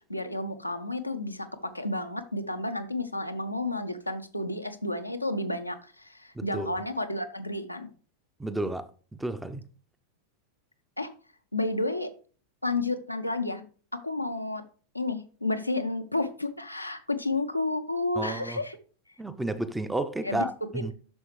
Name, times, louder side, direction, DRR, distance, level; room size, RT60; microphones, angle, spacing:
voice 1, 0.1-7.9 11.0-11.1 11.5-12.1 12.6-13.6 13.9-14.6 14.9-18.8 20.2-20.9, left 2 dB, 85° left, 0.9 m, -31 dB
voice 2, 6.3-6.7 8.4-8.9 9.2-9.6 18.2-18.6 19.2-20.9, right 1 dB, 5° right, 0.8 m, -31 dB
11.0 x 6.4 x 3.2 m
figure-of-eight pair, 90°, 0 cm